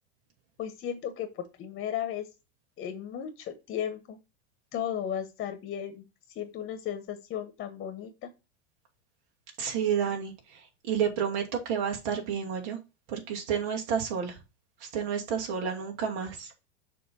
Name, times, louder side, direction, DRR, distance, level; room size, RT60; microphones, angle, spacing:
voice 1, 0.6-2.3 2.8-4.2 4.7-6.0 6.3-8.3, left 9 dB, 30° left, 9 dB, 1.2 m, -35 dB
voice 2, 9.6-12.8 13.1-14.4 14.8-16.5, right 7 dB, 60° right, 1 dB, 2.6 m, -30 dB
6.7 x 3.6 x 5.2 m, 0.26 s
hypercardioid pair, 115°, 32 cm